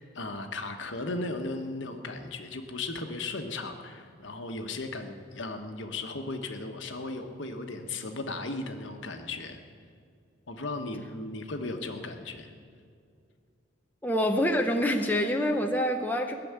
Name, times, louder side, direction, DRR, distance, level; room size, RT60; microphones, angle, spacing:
voice 1, 0.0-9.6 10.5-12.5, left 2 dB, 65° left, 5 dB, 1.3 m, -36 dB
voice 2, 14.0-16.3, equal, 10° left, 3 dB, 0.7 m, -26 dB
17.5 x 7.0 x 9.5 m, 2.3 s
head